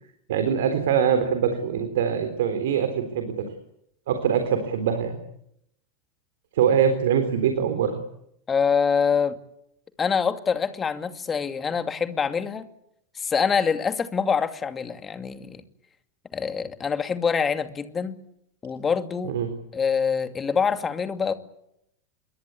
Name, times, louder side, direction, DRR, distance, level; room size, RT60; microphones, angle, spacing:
voice 1, 0.3-3.4 4.1-5.2 6.5-8.0 19.2-19.5, right 8 dB, 65° right, 7 dB, 3.7 m, -23 dB
voice 2, 8.5-9.4 10.0-12.7 13.1-15.6 16.3-18.2 18.6-19.3 19.7-21.3, left 6 dB, 25° left, 9 dB, 2.5 m, -25 dB
27.5 x 23.5 x 8.5 m, 0.77 s
figure-of-eight pair, 80°, 0 cm